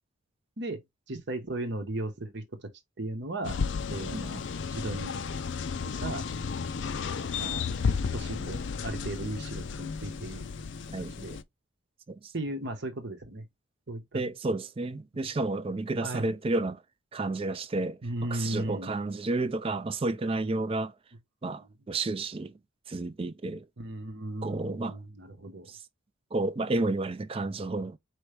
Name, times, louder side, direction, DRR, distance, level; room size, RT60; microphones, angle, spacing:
voice 1, 1.1-2.7 3.0-3.6 3.9-4.4 4.7-5.2 6.0-6.2 7.4-7.7 8.1-10.5 11.0-11.4 12.3-13.4 13.9-14.2 16.0-16.3 18.0-18.9 23.8-25.7, right 1 dB, 55° right, 1.2 m, -36 dB
sound 1, 3.4-11.4, left 5 dB, 60° left, 0.4 m, -33 dB
voice 2, 14.1-16.8 17.1-18.0 18.3-20.9 21.4-22.5 22.9-23.7 24.4-25.0 25.7-25.8 26.3-28.0, right 2 dB, 25° right, 0.4 m, -31 dB
4.6 x 3.1 x 3.2 m
head